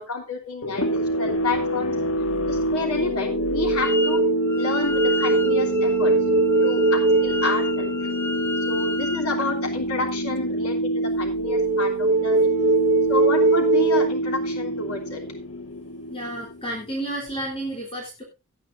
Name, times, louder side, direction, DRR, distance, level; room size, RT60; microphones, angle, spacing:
voice 1, 0.0-1.9 2.5-4.2 4.5-6.1 6.6-7.9 8.7-12.5 13.1-15.2, left 3 dB, 85° left, 3 dB, 3.1 m, -30 dB
sound 1, 0.6-16.9, equal, 65° left, 1.5 m, -27 dB
sound 2, 2.3-2.6 3.0-8.9 11.4-14.1, right 3 dB, 35° right, 1.0 m, -22 dB
Wind instrument woodwind instrument, 3.8-4.2 4.5-9.3, left 3 dB, 10° left, 0.5 m, -33 dB
voice 2, 16.1-18.2, right 1 dB, 25° left, -2 dB, 3.4 m, -31 dB
17.5 x 9.1 x 2.6 m, 0.25 s
head